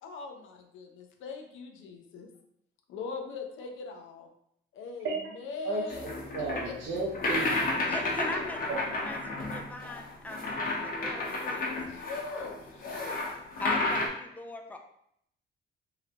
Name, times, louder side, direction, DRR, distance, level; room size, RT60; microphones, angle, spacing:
voice 1, 0.0-2.3 2.9-4.3 4.7-6.1 6.6-6.7 11.9-13.2, left 4 dB, 80° left, 3 dB, 0.6 m, -40 dB
voice 2, 5.6-7.7 8.7-8.8, right 3 dB, 75° right, -3 dB, 0.7 m, -34 dB
sound 1, 5.9-14.1, left 2 dB, 45° left, 0.8 m, -32 dB
voice 3, 7.9-10.6 10.8-11.8 13.6-14.8, left 2 dB, 10° left, 3 dB, 0.4 m, -41 dB
3.8 x 2.1 x 2.8 m, 0.73 s
cardioid pair, 90°, 20 cm